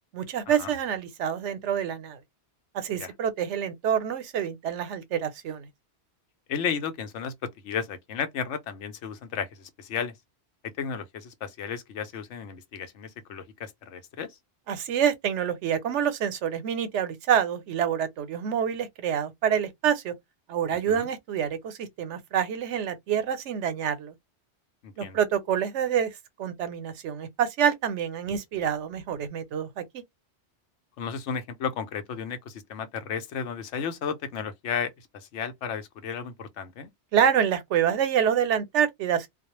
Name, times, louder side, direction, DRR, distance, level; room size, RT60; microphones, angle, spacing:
voice 1, 0.1-2.2 2.7-5.7 14.7-20.1 20.5-24.1 25.0-26.1 26.4-30.0 37.1-39.3, right 8 dB, 85° right, 0.9 m, -27 dB
voice 2, 6.5-10.1 10.8-14.4 20.9-21.1 24.8-25.2 31.0-36.9, left 7 dB, 90° left, 1.0 m, -34 dB
2.3 x 2.0 x 2.9 m
omnidirectional pair, 1.2 m